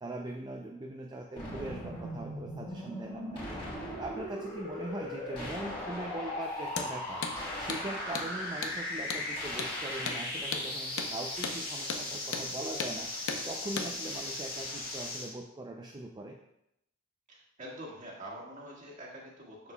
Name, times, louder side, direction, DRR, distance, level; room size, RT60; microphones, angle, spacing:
voice 1, 0.0-3.6 4.0-7.3 7.6-13.1 13.4-16.4, right 1 dB, 20° right, 1 dB, 0.4 m, -41 dB
sound 1, 1.4-15.3, left 1 dB, 25° left, 2.5 m, -38 dB
Hammer, 6.7-6.9 7.2-7.4 7.7-7.8 8.1-8.3 8.6-8.8 9.1-9.2 9.6-9.7 10.1-10.2 10.5-10.7 11.0-11.1 11.4-11.6 11.9-12.0 12.3-12.5 12.8-12.9 13.3-13.4 13.8-13.9, left 5 dB, 75° left, 0.7 m, -35 dB
voice 2, 17.3-19.7, right 1 dB, 35° right, -4 dB, 1.6 m, -46 dB
6.8 x 6.7 x 2.2 m, 0.81 s
head